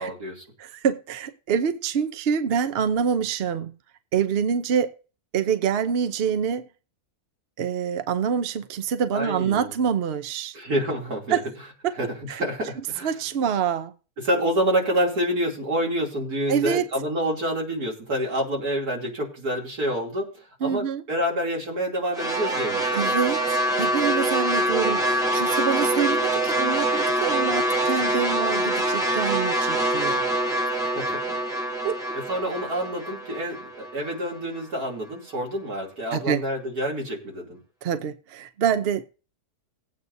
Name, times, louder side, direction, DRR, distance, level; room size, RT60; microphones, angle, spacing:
voice 1, 0.0-0.4 9.1-9.7 10.5-11.4 12.0-13.1 14.2-23.1 24.6-25.1 30.7-31.4 32.3-37.6, equal, 80° right, 3.4 m, -28 dB
voice 2, 0.6-3.7 4.1-5.0 5.3-6.7 7.6-10.6 11.3-11.4 11.8-11.9 12.3-12.4 13.0-13.9 16.5-16.9 20.6-21.0 22.9-30.2 31.8-32.0 36.1-36.4 37.8-39.1, right 7 dB, 55° right, 0.7 m, -26 dB
sound 1, 22.1-34.4, right 1 dB, 5° right, 1.0 m, -25 dB
18.5 x 8.5 x 2.6 m
omnidirectional pair, 1.6 m